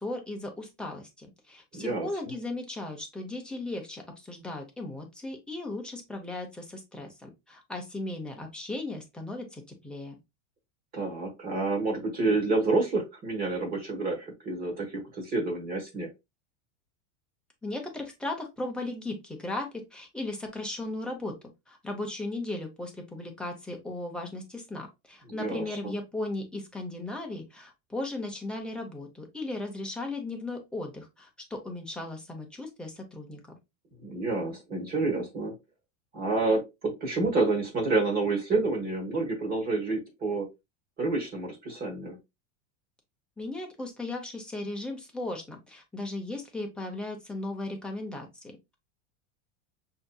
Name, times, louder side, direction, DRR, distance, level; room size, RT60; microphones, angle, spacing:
voice 1, 0.0-10.2 17.6-21.4 21.7-33.6 43.4-48.7, left 2 dB, 5° left, 1 dB, 0.7 m, -36 dB
voice 2, 1.7-2.1 10.9-16.1 25.3-25.7 34.0-35.5 36.1-40.5 41.0-42.2, right 3 dB, 25° right, 2 dB, 1.2 m, -28 dB
5.7 x 2.8 x 2.2 m, 0.22 s
supercardioid pair, 155°, 36 cm